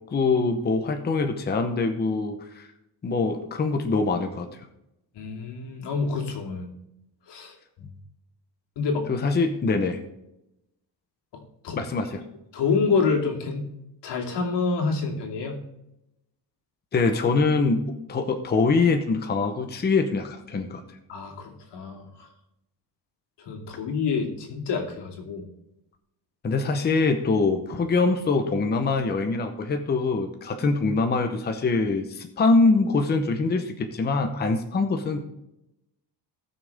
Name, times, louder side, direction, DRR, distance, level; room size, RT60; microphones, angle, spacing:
voice 1, 0.1-2.7 3.0-4.5 9.1-10.0 11.8-12.2 16.9-17.8 18.1-20.8 26.4-35.2, left 3 dB, 25° left, 5 dB, 0.8 m, -24 dB
voice 2, 5.1-6.7 7.3-7.9 8.8-9.1 11.3-11.8 12.5-13.7 14.0-15.6 21.1-22.3 23.4-25.4, left 4 dB, 80° left, 1 dB, 2.6 m, -28 dB
18.5 x 6.4 x 3.5 m, 0.86 s
cardioid pair, 170°, 41 cm